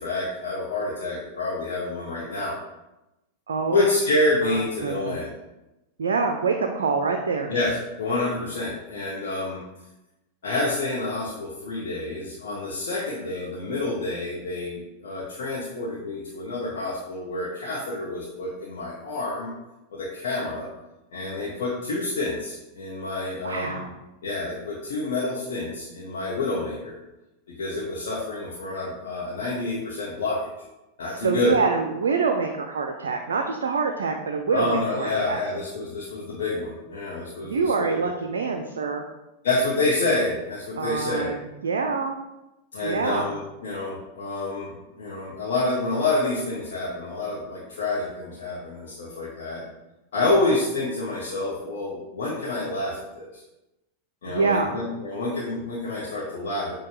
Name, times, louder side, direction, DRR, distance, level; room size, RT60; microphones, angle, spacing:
voice 1, 0.0-2.6 3.7-5.3 7.5-9.6 10.4-19.5 19.9-20.7 21.1-23.9 24.2-26.9 27.6-30.5 31.0-31.5 34.5-37.9 39.4-41.4 42.7-49.6 50.1-53.4 54.2-56.8, left 2 dB, 60° left, -5 dB, 0.8 m, -28 dB
voice 2, 3.5-3.9 4.4-5.2 6.0-7.5 12.9-13.1 23.4-23.9 31.1-35.4 37.4-39.0 40.8-42.2 42.8-43.3 54.3-54.7, right 4 dB, 65° right, 4 dB, 0.3 m, -26 dB
6.3 x 2.2 x 3.0 m, 0.97 s
figure-of-eight pair, 90°, 0 cm